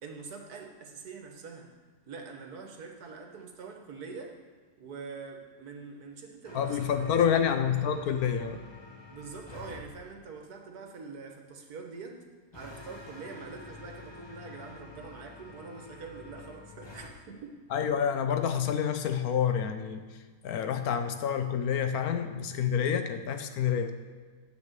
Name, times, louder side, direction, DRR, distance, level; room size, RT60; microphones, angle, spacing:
voice 1, 0.0-1.7 2.0-4.3 4.8-7.5 9.1-12.2 12.5-17.6, right 4 dB, 70° right, 3 dB, 1.7 m, -44 dB
sound 1, 6.4-9.8 12.5-17.1, left 4 dB, 20° left, 0.8 m, -48 dB
voice 2, 6.5-8.6 17.7-23.9, left 8 dB, 70° left, 8 dB, 1.2 m, -28 dB
8.7 x 6.1 x 7.5 m, 1.5 s
omnidirectional pair, 1.7 m